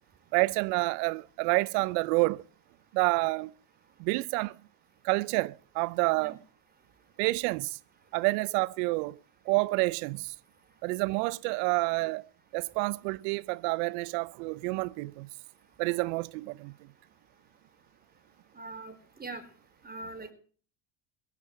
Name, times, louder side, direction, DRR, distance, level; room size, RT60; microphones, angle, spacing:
voice 1, 0.3-2.4 2.9-3.5 4.0-4.6 5.0-6.4 7.2-7.8 8.1-9.2 9.5-10.3 10.8-12.2 12.5-15.3 15.8-16.7, right 24 dB, 80° right, 0.7 m, -28 dB
voice 2, 18.5-19.4 19.8-20.3, right 3 dB, 20° right, 4.3 m, -42 dB
17.0 x 11.0 x 7.7 m
supercardioid pair, 85°, 49 cm